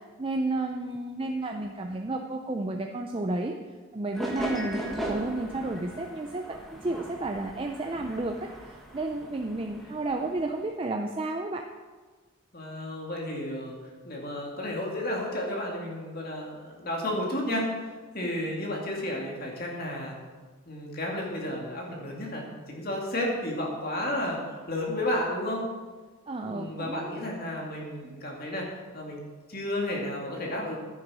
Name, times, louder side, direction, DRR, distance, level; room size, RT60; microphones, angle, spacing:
voice 1, 0.2-11.7 18.2-18.3 26.3-27.3 28.0-28.2, right 2 dB, 25° right, 3 dB, 0.5 m, -32 dB
sound 1, 4.1-10.6, right 1 dB, ahead, 1.4 m, -38 dB
voice 2, 12.5-13.8 14.0-20.2 20.7-24.4 24.7-25.6 26.4-28.7 28.9-29.2 29.5-30.8, left 1 dB, 45° left, -1 dB, 2.2 m, -32 dB
11.0 x 10.0 x 4.9 m, 1.4 s
head